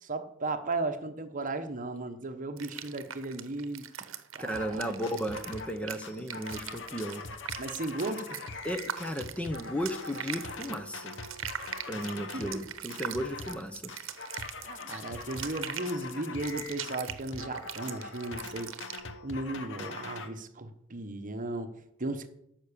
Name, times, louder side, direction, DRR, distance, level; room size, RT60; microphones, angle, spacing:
voice 1, 0.0-3.9 4.3-5.2 7.6-8.3 12.3-12.4 14.6-18.7 19.2-22.3, right 2 dB, 40° right, 8 dB, 1.0 m, -36 dB
sound 1, 2.6-19.0, right 9 dB, 75° right, 0.9 m, -41 dB
voice 2, 4.4-7.2 8.6-11.2 11.9-13.9, equal, 5° left, 7 dB, 0.8 m, -35 dB
sound 2, 4.5-4.8 5.0-5.8 6.0-12.6 12.9-13.6 13.9-20.3, left 3 dB, 65° left, 1.1 m, -42 dB
13.5 x 5.9 x 6.8 m, 0.78 s
head